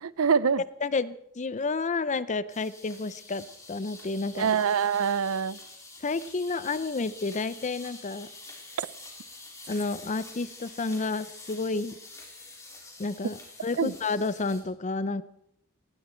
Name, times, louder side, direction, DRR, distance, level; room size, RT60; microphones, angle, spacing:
voice 1, 0.0-0.6 4.3-5.6 13.8-13.9, right 6 dB, 65° right, 19 dB, 0.5 m, -25 dB
voice 2, 0.8-4.5 6.0-8.3 9.7-12.0 13.0-13.4 13.6-15.2, left 3 dB, 35° left, 16 dB, 0.6 m, -30 dB
sound 1, 2.5-14.6, left 2 dB, 15° left, 3.5 m, -47 dB
18.5 x 17.5 x 4.4 m, 0.78 s
head